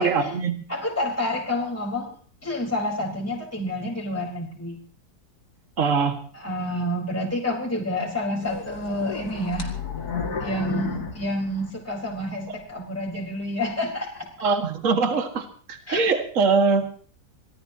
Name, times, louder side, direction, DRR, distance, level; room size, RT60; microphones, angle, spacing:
voice 1, 0.0-0.6 5.8-6.2 14.4-16.9, right 4 dB, 45° right, 5 dB, 2.2 m, -22 dB
voice 2, 0.7-2.1 2.4-4.8 6.3-9.7 10.4-14.3 15.9-16.0, left 1 dB, 10° left, -3 dB, 4.3 m, -28 dB
sound 1, 8.4-12.2 12.6-12.7 13.3-13.5, left 5 dB, 60° left, 2.7 m, -32 dB
26.0 x 18.5 x 2.9 m, 0.43 s
omnidirectional pair, 1.9 m